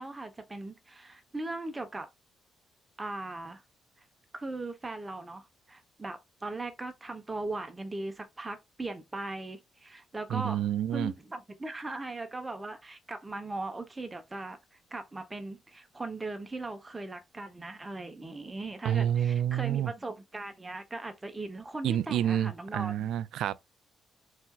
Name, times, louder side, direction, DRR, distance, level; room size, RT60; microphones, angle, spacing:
voice 1, 0.0-2.1 3.0-3.6 4.3-10.6 10.9-23.1, right 2 dB, 20° right, 0.9 m, -39 dB
voice 2, 10.3-11.1 18.8-19.9 21.8-23.6, right 10 dB, 80° right, 0.3 m, -28 dB
4.3 x 4.1 x 2.4 m
cardioid pair, 90°, 0 cm